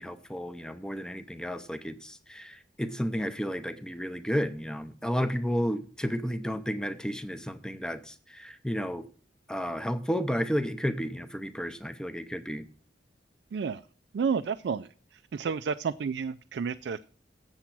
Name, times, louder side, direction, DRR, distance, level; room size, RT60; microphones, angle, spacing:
voice 1, 0.0-9.1 9.5-12.6, equal, 5° left, 0.6 m, -32 dB
voice 2, 14.1-14.9 15.3-17.0, right 6 dB, 70° right, 0.3 m, -30 dB
7.9 x 7.3 x 5.9 m
head